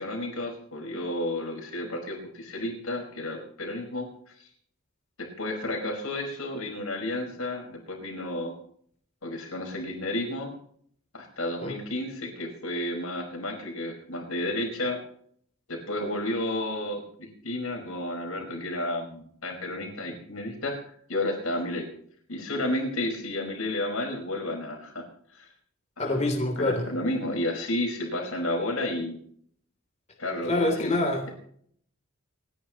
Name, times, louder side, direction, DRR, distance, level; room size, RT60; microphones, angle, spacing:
voice 1, 0.0-4.1 4.4-4.5 5.2-8.5 9.2-10.5 11.1-15.0 15.7-20.8 21.1-21.9 22.3-25.1 25.3-25.5 26.0-26.2 26.6-29.2 30.2-30.9, left 1 dB, 85° left, 2 dB, 4.9 m, -31 dB
voice 2, 26.0-26.9 30.5-31.2, left 2 dB, 35° left, 2 dB, 3.2 m, -26 dB
29.5 x 10.0 x 3.0 m, 0.63 s
head